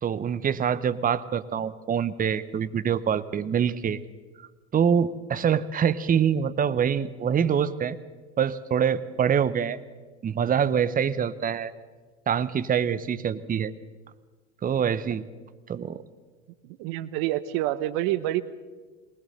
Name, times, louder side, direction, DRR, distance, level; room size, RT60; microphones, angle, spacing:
voice 1, 0.0-4.0 4.7-8.0 8.4-9.8 10.2-11.7 12.3-13.7 14.6-15.3 15.7-16.0, right 8 dB, 25° right, 15 dB, 0.8 m, -25 dB
voice 2, 16.6-18.4, right 14 dB, 55° right, 15 dB, 1.1 m, -27 dB
20.0 x 19.5 x 6.7 m, 1.4 s
hypercardioid pair, 80°, 37 cm